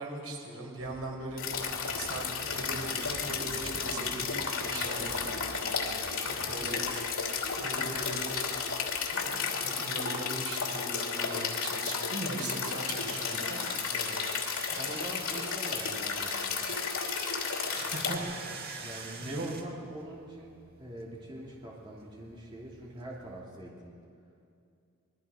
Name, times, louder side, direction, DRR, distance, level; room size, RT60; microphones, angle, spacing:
voice 1, 0.0-1.4 1.9-5.2 6.2-6.8 7.6-8.5 9.1-13.6 14.7-15.0 17.6-18.3 18.6-18.9 19.2-19.5, right 2 dB, 85° right, -1 dB, 5.2 m, -39 dB
Motorcycle, 0.8-9.4, equal, 45° left, 6.3 m, -49 dB
sound 1, 1.4-18.2, left 6 dB, 90° left, 2.8 m, -33 dB
sound 2, 6.0-23.4, right 4 dB, 45° right, 2.0 m, -47 dB
voice 2, 13.9-14.4 14.7-16.7 18.8-20.5 20.8-24.0, right 1 dB, 20° right, -4 dB, 2.7 m, -44 dB
27.5 x 21.5 x 5.1 m, 2.4 s
head